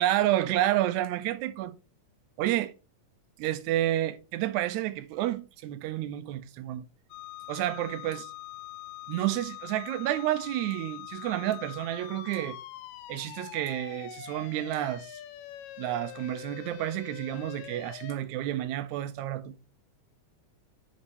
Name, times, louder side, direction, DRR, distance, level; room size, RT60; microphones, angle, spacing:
voice 1, 0.0-1.7 2.4-2.7 3.4-6.8 7.5-8.3 9.1-12.6 13.1-15.2 15.8-19.6, right 13 dB, 75° right, 1.8 m, -30 dB
sound 1, 7.1-18.2, left 14 dB, 80° left, 1.7 m, -44 dB
6.9 x 5.3 x 3.1 m
omnidirectional pair, 3.7 m